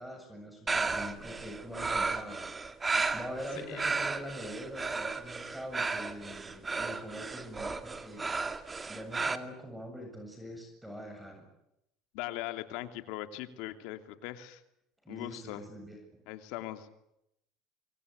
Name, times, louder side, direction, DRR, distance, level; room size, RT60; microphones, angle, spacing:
voice 1, 0.0-2.5 3.1-8.6 8.9-11.5 15.0-16.0, equal, 5° right, 5 dB, 7.7 m, -43 dB
sound 1, 0.7-9.4, right 4 dB, 20° right, 2.2 m, -34 dB
voice 2, 12.1-14.6 15.1-15.6 16.3-16.9, left 14 dB, 75° left, 8 dB, 2.8 m, -40 dB
25.0 x 25.0 x 8.4 m, 0.81 s
supercardioid pair, 100°, 0 cm